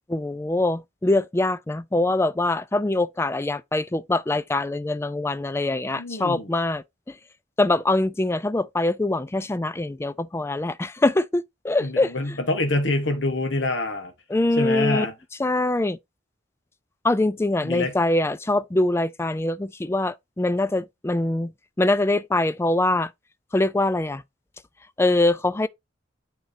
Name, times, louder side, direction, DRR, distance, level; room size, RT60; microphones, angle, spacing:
voice 1, 0.1-7.2 7.6-12.1 14.3-15.1 15.4-16.0 17.0-21.5 21.8-23.1 23.5-24.2 25.0-25.7, left 2 dB, 15° left, 0.3 m, -23 dB
voice 2, 6.0-6.5 11.8-14.1 14.6-15.1 17.6-17.9, left 2 dB, 80° left, 1.2 m, -26 dB
9.0 x 4.5 x 2.7 m
head